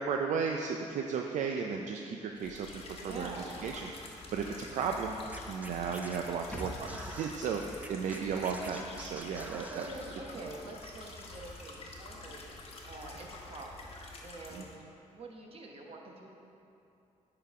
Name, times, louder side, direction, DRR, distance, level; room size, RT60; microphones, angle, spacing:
voice 1, 0.0-3.3 3.6-5.2 5.5-9.9 14.5-14.7, right 6 dB, 70° right, 3 dB, 0.4 m, -35 dB
sound 1, 2.3-14.8, left 3 dB, 50° left, 1.1 m, -48 dB
voice 2, 3.0-3.7 9.7-13.9 14.2-14.8 15.1-16.3, right 3 dB, 50° right, 0 dB, 1.2 m, -46 dB
Scratching (performance technique), 5.3-7.3 7.8-10.0, right 2 dB, 10° right, 0.5 m, -47 dB
sound 2, 6.5-10.0 10.3-10.4, equal, 10° left, 0.8 m, -50 dB
9.8 x 3.9 x 4.8 m, 2.7 s
cardioid pair, 80°, 13 cm